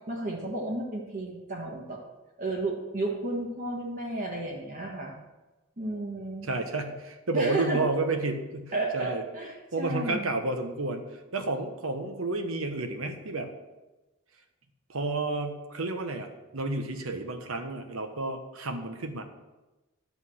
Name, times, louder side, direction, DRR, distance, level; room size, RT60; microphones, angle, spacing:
voice 1, 0.1-2.0 2.4-5.1 5.8-6.5 7.3-7.8 8.7-10.3, right 2 dB, 40° right, -1 dB, 1.5 m, -32 dB
voice 2, 6.4-9.2 9.7-11.1 11.3-13.5 14.9-19.2, right 2 dB, 85° right, 6 dB, 1.1 m, -31 dB
10.5 x 4.0 x 7.7 m, 1.1 s
head